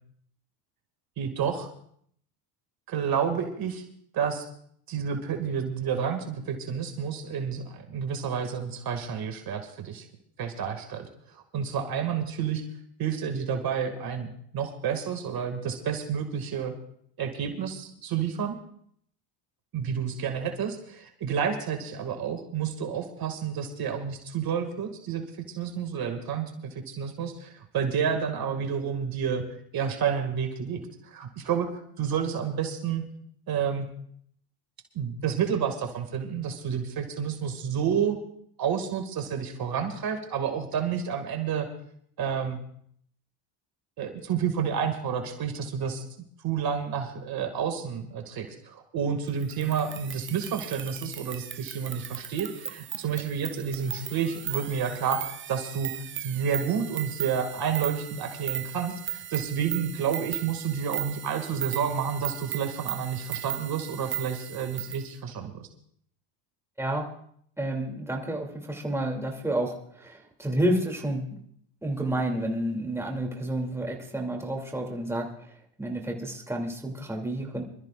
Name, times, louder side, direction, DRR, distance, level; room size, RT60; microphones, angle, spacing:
voice 1, 1.2-1.7 2.9-3.8 4.1-4.5 4.9-10.1 10.4-12.6 13.0-14.3 14.5-16.7 17.2-18.6 19.7-25.2 25.6-29.4 29.7-33.0 33.5-33.9 34.9-38.2 38.6-41.7 42.2-42.6 44.0-46.0 46.4-55.9 56.2-65.5, right 7 dB, 50° right, 5 dB, 2.2 m, -30 dB
sound 1, 49.4-65.1, right 10 dB, 25° right, 0.6 m, -37 dB
voice 2, 67.6-71.4 71.8-75.5 75.8-77.6, right 1 dB, 5° right, 1 dB, 2.7 m, -30 dB
26.0 x 13.5 x 2.5 m, 0.65 s
supercardioid pair, 95°, 48 cm